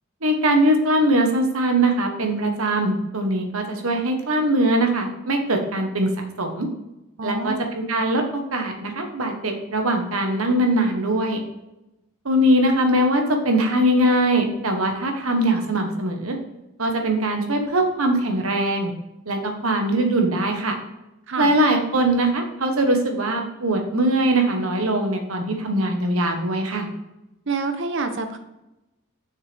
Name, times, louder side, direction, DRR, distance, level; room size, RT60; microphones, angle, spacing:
voice 1, 0.2-6.1 6.4-6.7 7.2-8.2 8.5-11.4 12.2-16.3 16.8-18.9 19.3-20.7 21.4-26.9, right 1 dB, 80° right, 4 dB, 1.3 m, -21 dB
voice 2, 7.2-7.6 21.3-21.5 27.5-28.4, right 3 dB, 60° right, 7 dB, 0.9 m, -27 dB
6.8 x 6.6 x 3.5 m, 0.94 s
head